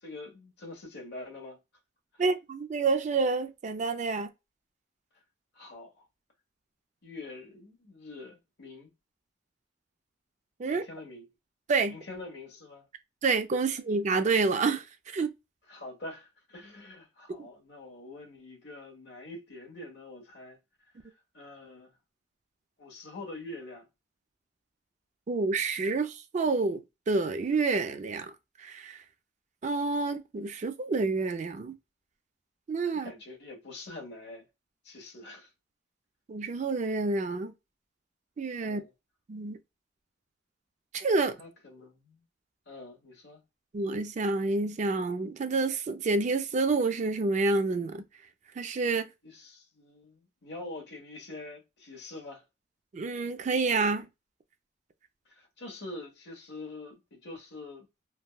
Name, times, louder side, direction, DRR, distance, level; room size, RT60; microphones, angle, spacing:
voice 1, 0.0-1.6 2.1-2.2 5.5-6.1 7.0-8.9 10.6-11.3 11.8-12.9 15.7-20.6 21.0-22.0 22.8-23.9 32.9-34.5 34.8-35.5 38.6-38.9 41.4-42.2 42.7-43.4 49.2-52.4 55.2-57.9, left 2 dB, 65° left, 1.2 m, -45 dB
voice 2, 2.2-4.3 10.6-10.8 11.7-11.9 13.2-15.3 25.3-26.8 27.1-28.3 28.6-29.0 29.6-31.7 32.7-33.1 36.3-37.5 38.4-38.8 39.3-39.6 40.9-41.3 43.7-48.0 48.6-49.1 52.9-54.1, right 3 dB, 40° right, 0.4 m, -28 dB
3.4 x 2.2 x 2.2 m
head